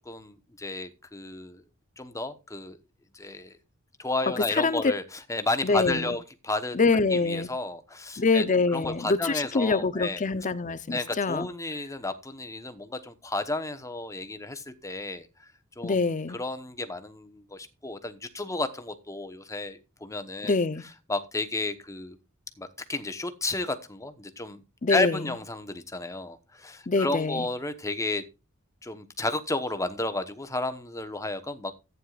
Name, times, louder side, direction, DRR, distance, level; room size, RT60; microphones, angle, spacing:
voice 1, 0.1-1.6 2.0-2.8 3.1-3.6 4.0-6.8 7.1-8.4 8.7-10.2 10.9-15.3 15.8-20.5 21.1-22.2 22.6-24.6 24.9-28.2 28.8-31.7, left 2 dB, 15° left, 1.0 m, -32 dB
voice 2, 4.4-4.9 5.6-6.1 6.7-7.5 8.2-11.5 15.8-16.4 20.4-20.8 24.8-25.2 26.9-27.5, left 3 dB, 35° left, 0.6 m, -25 dB
14.5 x 9.4 x 2.4 m
head